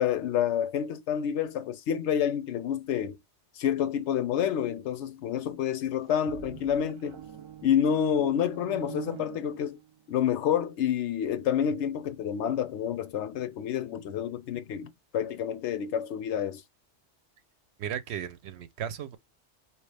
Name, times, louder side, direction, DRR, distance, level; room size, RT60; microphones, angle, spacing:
voice 1, 0.0-3.2 3.6-7.2 7.6-9.8 10.1-16.6, left 9 dB, 80° left, 0.9 m, -28 dB
sound 1, 5.9-10.1, right 10 dB, 40° right, 0.4 m, -45 dB
voice 2, 17.8-19.2, right 9 dB, 70° right, 0.8 m, -35 dB
4.6 x 2.9 x 3.2 m
omnidirectional pair, 1.2 m